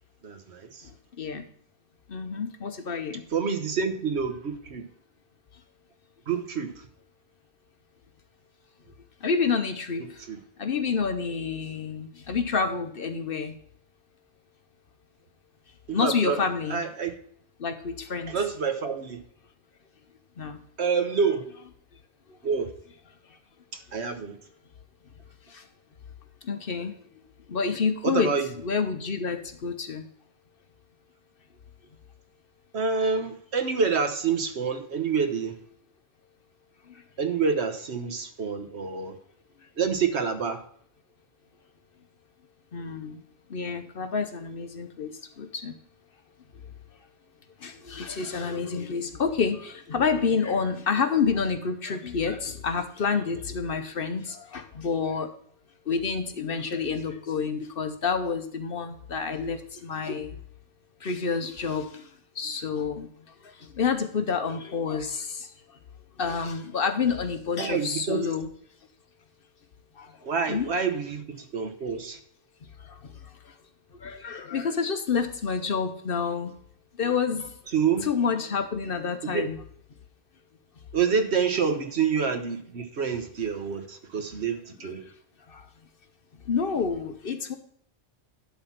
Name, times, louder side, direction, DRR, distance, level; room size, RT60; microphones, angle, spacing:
voice 1, 0.2-0.9 3.3-4.8 6.3-6.7 10.3-10.4 15.9-16.4 16.7-17.2 18.3-19.2 20.8-21.4 22.4-22.7 23.7-24.4 28.0-28.4 32.7-35.5 37.2-39.1 39.8-40.6 67.6-68.2 70.2-72.2 77.7-78.1 79.2-79.4 80.9-85.0, right 6 dB, 65° right, 7 dB, 1.3 m, -27 dB
voice 2, 2.1-3.2 9.2-10.2 10.6-13.5 15.9-16.8 17.6-18.4 20.4-20.6 25.5-25.7 26.4-26.9 27.5-30.1 36.9-37.0 42.7-43.2 43.5-45.8 47.6-55.3 55.9-60.4 61.0-62.1 62.4-63.1 63.4-65.5 66.2-68.5 70.0-70.2 70.5-70.7 72.8-73.1 73.5-73.6 74.0-76.5 77.0-77.6 78.0-79.6 85.5-85.7 86.5-87.6, left 5 dB, 55° left, 8 dB, 0.9 m, -28 dB
11.5 x 3.9 x 5.7 m, 0.62 s
omnidirectional pair, 1.2 m